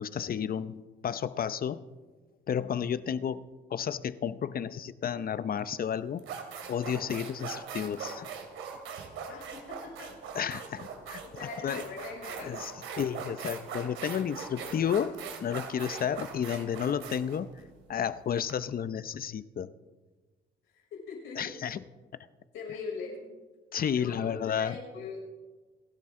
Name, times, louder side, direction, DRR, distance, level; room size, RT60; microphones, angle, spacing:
voice 1, 0.0-1.8 2.5-3.4 3.7-6.2 6.7-8.3 10.3-11.2 11.6-11.8 12.5-12.7 13.0-15.1 15.4-17.5 17.9-19.7 21.4-21.8 23.7-24.7, left 8 dB, 50° left, 14 dB, 0.7 m, -32 dB
sound 1, 5.6-5.7 6.2-18.5, right 6 dB, 85° right, 2.5 m, -41 dB
voice 2, 9.3-10.2 11.2-12.6 20.7-21.5 22.5-23.2 23.9-25.2, left 5 dB, 90° left, -3 dB, 6.3 m, -41 dB
29.0 x 11.5 x 3.8 m, 1.3 s
cardioid pair, 90°, 20 cm